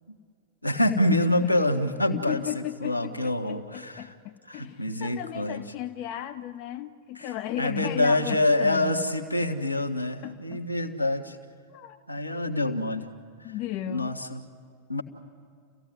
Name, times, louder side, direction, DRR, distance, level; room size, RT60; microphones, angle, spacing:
voice 1, 0.6-2.4 2.8-4.1 4.5-5.6 7.1-7.3 7.6-11.4 12.1-13.1 13.4-13.5 13.8-14.4 14.9-15.0, left 1 dB, 85° left, 4 dB, 1.6 m, -26 dB
voice 2, 2.1-9.1 10.2-10.6 11.7-12.0 13.4-14.2, left 13 dB, 45° left, 9 dB, 0.7 m, -35 dB
29.0 x 15.5 x 9.6 m, 2.3 s
figure-of-eight pair, 90°, 0 cm